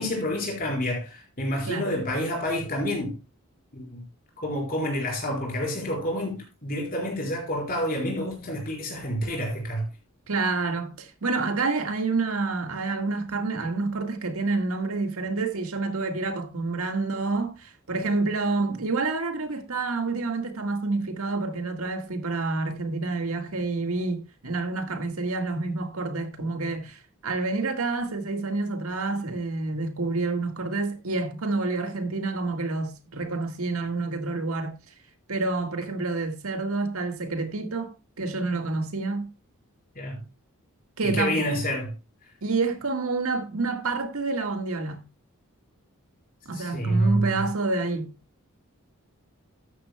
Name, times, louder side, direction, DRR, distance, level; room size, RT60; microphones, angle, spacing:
voice 1, 0.0-3.2 3.7-4.0 4.4-9.8 39.9-40.2 41.0-41.9 46.5-47.4, equal, 40° left, 4.4 m, -28 dB
voice 2, 10.3-34.7 35.3-39.3 41.0-41.6 42.4-45.0 46.4-48.1, right 3 dB, 80° right, 1.7 m, -28 dB
13.0 x 10.0 x 2.2 m
head